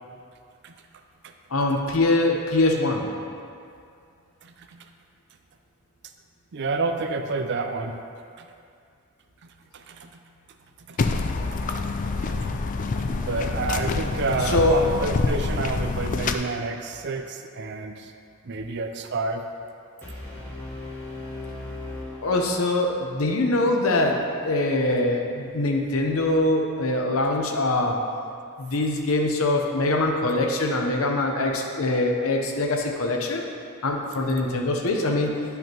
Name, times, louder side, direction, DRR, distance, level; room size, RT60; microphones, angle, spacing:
voice 1, 1.5-3.1 14.4-14.8 22.2-28.0 28.6-33.5 33.8-35.4, left 2 dB, 75° left, 2 dB, 0.8 m, -23 dB
voice 2, 4.4-4.9 6.5-8.0 8.4-8.5 9.7-10.1 10.9-11.0 11.6-11.8 12.2-12.4 13.0-18.1 18.4-19.4, right 3 dB, 50° right, 6 dB, 0.5 m, -29 dB
sound 1, 11.0-16.4, left 3 dB, 35° left, 0.3 m, -26 dB
Brass instrument, 20.0-23.1, left 2 dB, 10° left, 1.4 m, -37 dB
11.0 x 5.5 x 3.0 m, 2.4 s
head